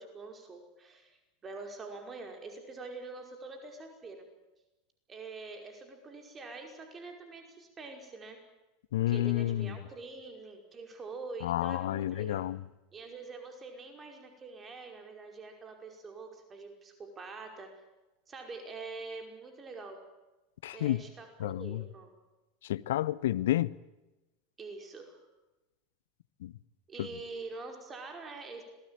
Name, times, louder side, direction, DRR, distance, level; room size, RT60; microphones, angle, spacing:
voice 1, 0.0-4.2 5.1-8.4 9.1-12.4 12.9-17.7 18.3-20.0 20.7-22.1 24.6-25.2 26.9-28.6, right 3 dB, 25° right, 5.2 m, -45 dB
voice 2, 8.9-9.8 11.4-12.6 20.6-21.0 21.4-21.8 22.6-23.8 26.4-26.5 27.0-27.1, left 13 dB, 65° left, 0.8 m, -30 dB
26.5 x 20.0 x 9.1 m
figure-of-eight pair, 85°, 0 cm